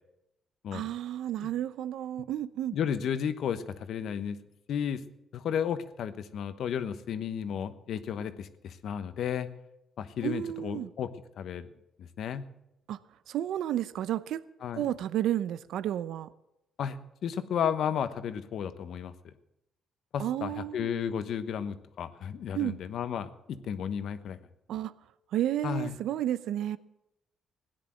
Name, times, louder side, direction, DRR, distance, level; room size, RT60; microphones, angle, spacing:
voice 1, 0.7-2.7 10.2-10.9 12.9-13.0 13.3-14.4 14.7-16.3 20.2-20.9 22.5-22.8 24.7-24.9 25.3-26.8, right 12 dB, 80° right, 15 dB, 0.7 m, -31 dB
voice 2, 2.7-4.4 4.7-5.0 5.3-9.5 10.0-11.1 11.4-11.7 12.0-12.5 14.6-14.9 16.8-17.0 17.2-19.1 20.1-24.4 25.6-25.9, left 8 dB, 70° left, 12 dB, 1.1 m, -33 dB
16.5 x 10.0 x 7.6 m, 0.86 s
cardioid pair, 90°, 0 cm